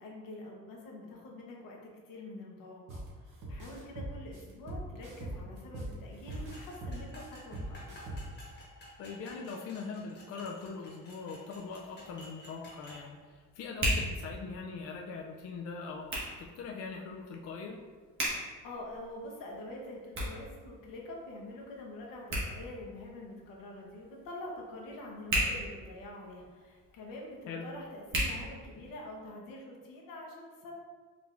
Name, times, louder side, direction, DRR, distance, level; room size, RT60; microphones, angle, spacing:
voice 1, 0.0-7.8 18.6-30.7, left 1 dB, 85° left, -1 dB, 1.0 m, -46 dB
sound 1, 2.9-3.1 3.4-5.9 6.3-8.4, right 1 dB, 70° right, 1.0 m, -40 dB
sound 2, 6.3-13.0, left 1 dB, 30° left, 1.2 m, -52 dB
voice 2, 9.0-16.1 16.4-17.9 27.5-27.7, left 4 dB, 50° left, 0 dB, 0.4 m, -41 dB
Hands, 11.5-29.2, equal, 40° right, 1.4 m, -39 dB
4.8 x 3.4 x 2.5 m, 1.5 s
cardioid pair, 150°, 33 cm